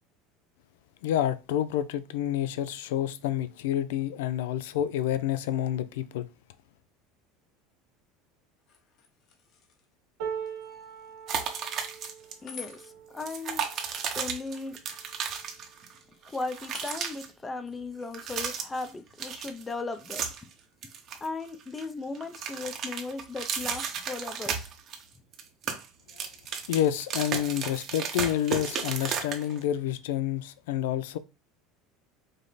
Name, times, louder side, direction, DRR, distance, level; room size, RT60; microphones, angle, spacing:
voice 1, 1.0-6.3 26.1-26.3 26.7-31.2, left 11 dB, 90° left, 0.4 m, -29 dB
sound 1, 8.6-21.0, left 5 dB, 40° left, 0.9 m, -54 dB
sound 2, 10.2-16.3 16.9-17.1 17.4-18.2 19.1-19.2, right 7 dB, 65° right, 1.4 m, -43 dB
sound 3, 11.3-12.3 12.6-12.7 13.2-16.0 16.2-17.3 18.0-18.9 19.2-20.5 20.8-21.8 22.1-25.0 25.3-29.6, right 7 dB, 40° right, 0.8 m, -34 dB
voice 2, 12.4-13.6 14.1-14.8 16.3-20.3 21.2-24.7, left 3 dB, 15° left, 0.5 m, -37 dB
5.1 x 2.0 x 4.0 m
supercardioid pair, 145°, 0 cm